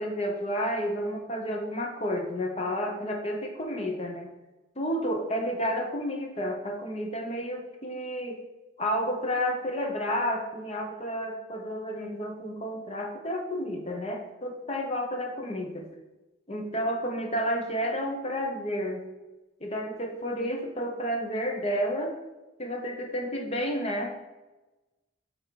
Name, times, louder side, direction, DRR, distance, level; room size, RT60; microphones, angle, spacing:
voice 1, 0.0-4.3 4.8-8.4 8.8-15.9 16.5-19.0 19.6-22.2 22.6-24.1, equal, 30° left, 3 dB, 0.7 m, -31 dB
7.4 x 3.4 x 4.0 m, 1.1 s
head